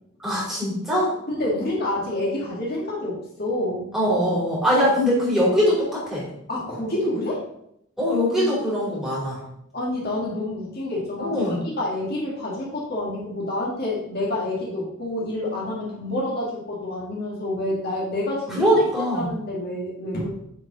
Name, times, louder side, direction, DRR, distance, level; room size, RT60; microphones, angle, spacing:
voice 1, 0.2-1.1 3.9-6.2 8.0-9.4 11.2-11.6 18.5-19.3, equal, ahead, -7 dB, 3.1 m, -22 dB
voice 2, 1.3-3.9 4.7-4.8 5.4-5.5 6.5-7.5 9.7-18.7 19.1-20.3, left 1 dB, 50° left, -4 dB, 1.8 m, -28 dB
9.1 x 4.7 x 4.0 m, 0.74 s
head